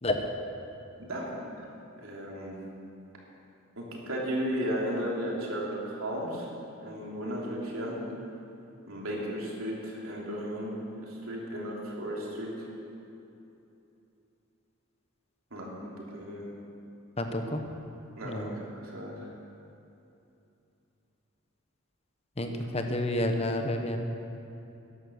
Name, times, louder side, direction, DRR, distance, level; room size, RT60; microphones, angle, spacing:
voice 1, 1.0-1.3 1.6-1.7 2.0-2.6 3.8-6.5 6.8-8.0 8.9-12.7 15.5-15.7 16.0-16.4 18.1-19.3, equal, 80° right, -3 dB, 3.1 m, -35 dB
voice 2, 17.2-17.7 18.2-18.6 22.4-24.0, left 1 dB, 30° left, 5 dB, 1.0 m, -30 dB
13.5 x 10.5 x 6.4 m, 2.8 s
head